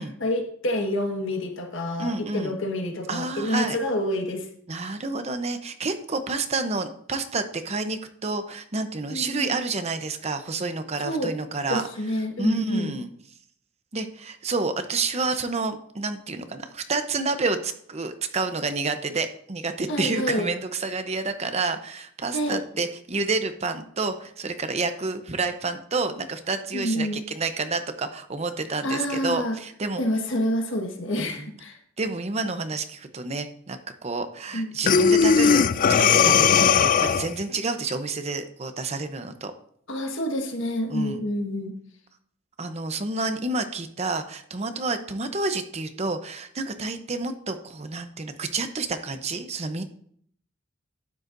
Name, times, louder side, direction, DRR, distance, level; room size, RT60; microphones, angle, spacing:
voice 1, 0.0-4.5 4.8-4.9 9.1-9.6 11.0-11.3 11.7-12.9 19.9-20.5 22.3-22.6 26.7-27.2 28.8-29.6 30.0-31.8 34.5-34.7 39.9-41.7, left 1 dB, 60° left, 4 dB, 1.6 m, -28 dB
voice 2, 2.0-2.5 3.1-3.8 4.7-11.9 12.4-13.1 13.9-30.0 31.4-31.5 32.0-35.6 36.0-39.5 40.9-41.2 42.6-49.8, right 3 dB, 30° right, 8 dB, 0.7 m, -29 dB
Breathing, 34.9-37.4, left 6 dB, 40° left, 0.3 m, -18 dB
12.0 x 9.4 x 2.6 m, 0.62 s
head